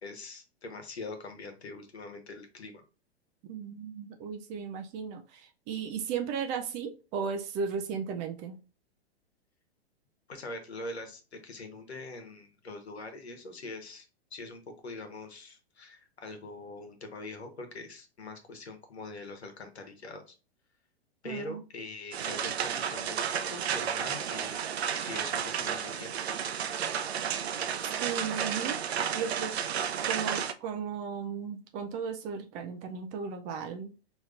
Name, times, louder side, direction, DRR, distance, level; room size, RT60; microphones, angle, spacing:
voice 1, 0.0-2.8 10.3-14.1 14.3-20.3 21.2-24.6 24.9-26.3, left 2 dB, 85° left, 6 dB, 1.2 m, -43 dB
voice 2, 3.5-8.6 21.2-21.6 28.0-29.6 30.1-33.9, right 6 dB, 20° right, 5 dB, 0.4 m, -35 dB
sound 1, 22.1-30.5, right 8 dB, 75° right, 0.6 m, -32 dB
4.9 x 3.0 x 2.4 m, 0.32 s
hypercardioid pair, 115°, 32 cm